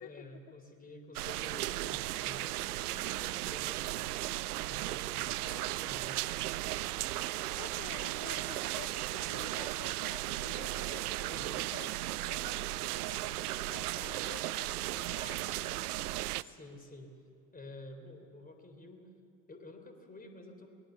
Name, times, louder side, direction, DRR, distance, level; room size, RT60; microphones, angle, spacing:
voice 1, 0.0-4.1 4.7-6.2 11.2-11.7 16.4-17.1 17.5-19.1 19.5-20.7, left 2 dB, 20° left, 6 dB, 3.7 m, -50 dB
sound 1, 1.2-16.4, right 16 dB, 75° right, 0.6 m, -36 dB
voice 2, 7.5-15.8, left 11 dB, 40° left, 11 dB, 1.0 m, -51 dB
24.0 x 19.0 x 7.0 m, 2.5 s
hypercardioid pair, 70°, 46 cm